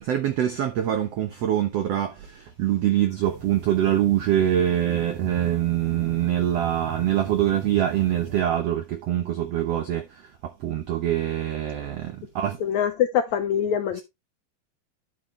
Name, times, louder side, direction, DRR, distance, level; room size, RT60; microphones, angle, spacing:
voice 1, 0.0-12.6, right 11 dB, 80° right, 1.4 m, -24 dB
sound 1, 3.2-8.4, right 6 dB, 50° right, 3.4 m, -39 dB
voice 2, 12.6-14.0, left 9 dB, 70° left, 1.9 m, -24 dB
9.7 x 8.0 x 3.2 m
omnidirectional pair, 4.2 m